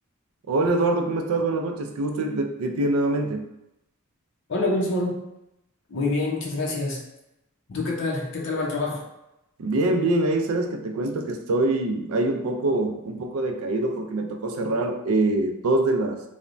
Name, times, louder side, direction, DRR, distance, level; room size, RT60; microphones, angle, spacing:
voice 1, 0.5-3.5 9.6-16.2, right 2 dB, 75° right, 5 dB, 0.4 m, -24 dB
voice 2, 4.5-5.2 5.9-7.0 7.7-9.0, left 2 dB, 60° left, -1 dB, 0.6 m, -26 dB
3.2 x 2.1 x 2.5 m, 0.88 s
head